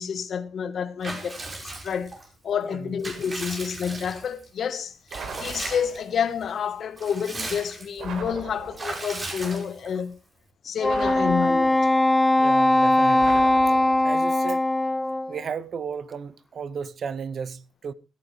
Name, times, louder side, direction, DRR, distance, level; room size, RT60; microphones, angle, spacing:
voice 1, 0.0-2.1 2.4-4.9 5.3-10.2 10.6-11.9, left 7 dB, 60° left, 1.4 m, -29 dB
Water / Bathtub (filling or washing) / Liquid, 1.0-2.3 2.7-4.4 5.1-6.0 6.4-6.5 6.8-8.0 8.8-10.0, right 2 dB, 30° right, 5.1 m, -36 dB
sound 1, 5.1-6.2 8.0-9.1 10.8-12.0 13.2-14.3, right 5 dB, 65° right, 4.2 m, -38 dB
Wind instrument woodwind instrument, 10.8-15.4, left 1 dB, 10° left, 0.6 m, -20 dB
voice 2, 12.4-13.4 14.0-14.6 15.3-17.9, right 6 dB, 50° right, 0.9 m, -34 dB
16.5 x 13.5 x 3.3 m
cardioid pair, 90°, 0 cm